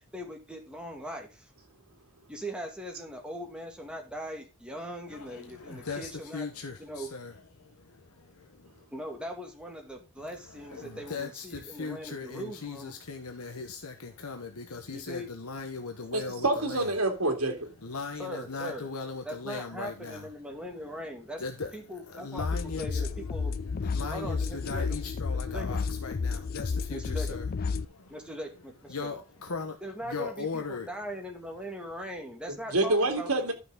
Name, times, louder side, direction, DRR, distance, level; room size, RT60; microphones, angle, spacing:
voice 1, 0.1-1.5 2.3-6.5 6.8-7.1 8.9-12.9 14.9-15.3 18.2-18.9 19.2-21.4 21.7-23.6 24.1-24.8 25.5-25.7 26.9-27.4 28.1-29.1 29.8-33.3, equal, 5° right, 2.3 m, -40 dB
voice 2, 5.1-8.8 10.2-16.9 17.8-20.3 21.4-23.2 23.5-28.3 28.9-30.9, left 4 dB, 80° left, 1.3 m, -39 dB
voice 3, 16.1-17.7 32.7-33.5, right 2 dB, 75° right, 2.6 m, -27 dB
sound 1, 22.4-27.8, left 4 dB, 40° left, 0.4 m, -31 dB
12.0 x 6.4 x 3.8 m
head